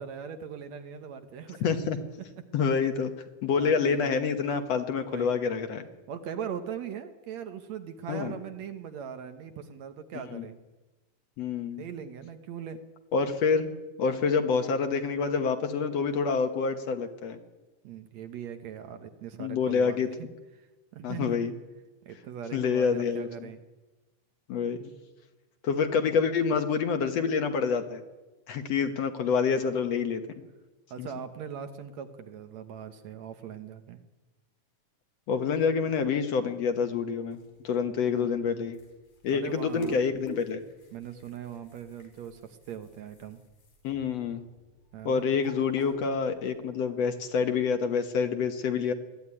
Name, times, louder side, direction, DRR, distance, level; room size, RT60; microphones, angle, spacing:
voice 1, 0.0-1.7 2.2-2.5 3.4-4.2 4.9-5.3 6.1-10.6 11.8-12.8 17.8-20.3 20.6-20.7 20.9-21.4 22.0-23.6 26.1-26.2 30.9-34.0 38.1-38.3 39.3-40.0 40.9-43.4 44.9-45.2, right 8 dB, 65° right, 8 dB, 2.2 m, -40 dB
voice 2, 1.6-2.0 2.5-3.1 3.4-5.9 8.1-8.3 10.3-10.4 11.4-11.8 13.1-13.7 14.0-17.4 19.4-20.1 21.0-21.5 22.5-23.5 24.5-24.9 25.6-28.0 28.5-30.2 31.0-31.1 35.3-37.4 37.6-38.8 39.2-40.6 43.8-44.4 45.0-48.9, left 5 dB, 60° left, 7 dB, 2.2 m, -27 dB
sound 1, 36.9-46.5, left 2 dB, 75° left, 5.9 m, -49 dB
20.5 x 14.0 x 9.9 m, 1.1 s
omnidirectional pair, 3.6 m